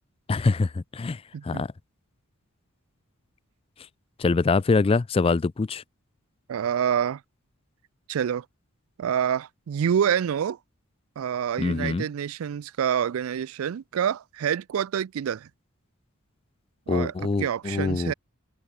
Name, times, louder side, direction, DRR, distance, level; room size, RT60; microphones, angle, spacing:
voice 1, 0.3-1.2 1.4-1.7 4.2-5.8 11.6-12.0 16.9-18.1, left 3 dB, 25° left, 0.3 m, -24 dB
voice 2, 1.3-1.6 6.5-7.2 8.1-8.4 9.0-10.6 11.2-15.5 16.9-17.1 17.4-18.1, right 8 dB, 70° right, 0.4 m, -27 dB
head